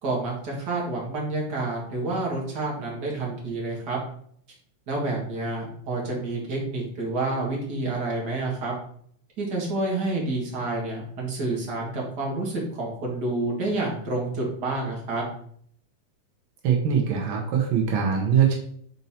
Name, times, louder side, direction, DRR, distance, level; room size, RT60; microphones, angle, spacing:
voice 1, 0.0-4.0 4.9-8.7 9.4-15.2, right 2 dB, 40° right, -2 dB, 1.8 m, -29 dB
voice 2, 16.6-18.5, right 7 dB, 85° right, 1 dB, 1.1 m, -22 dB
5.4 x 4.1 x 4.3 m, 0.62 s
omnidirectional pair, 3.5 m